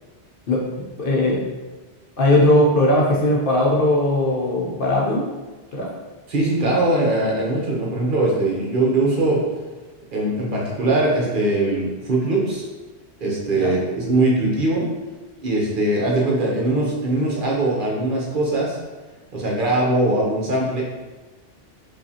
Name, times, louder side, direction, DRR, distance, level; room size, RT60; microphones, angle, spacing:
voice 1, 1.0-1.4 2.2-5.2 5.7-5.9 13.5-13.7, left 1 dB, 60° left, -2 dB, 0.8 m, -18 dB
voice 2, 6.3-9.4 10.1-12.6 13.2-14.9 15.4-18.8 19.3-20.8, right 2 dB, 55° right, -3 dB, 0.9 m, -21 dB
5.0 x 2.4 x 2.7 m, 1.2 s
omnidirectional pair, 1.1 m